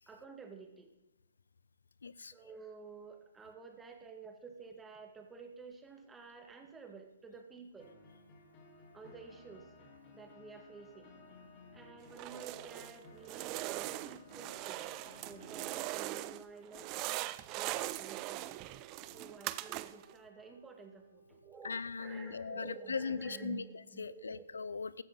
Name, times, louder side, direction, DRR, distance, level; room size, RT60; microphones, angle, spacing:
voice 1, 0.1-0.9 2.3-7.9 8.9-9.7 10.1-11.1 11.7-15.0 15.2-17.0 17.6-18.8 19.1-24.4, right 5 dB, 10° right, 5 dB, 2.0 m, -51 dB
voice 2, 2.0-2.3 21.6-23.6 24.0-25.0, left 5 dB, 75° left, 18 dB, 0.5 m, -39 dB
sound 1, 7.8-15.8, left 2 dB, 35° left, 3.7 m, -57 dB
Vacuum rolling on cement in a garage, 12.1-13.0 13.3-16.4 16.7-20.1, right 17 dB, 30° right, 0.5 m, -41 dB
Wind instrument woodwind instrument, 17.4-22.4, right 4 dB, 80° right, 4.5 m, -64 dB
15.5 x 12.0 x 4.1 m, 0.99 s
figure-of-eight pair, 130°, 0 cm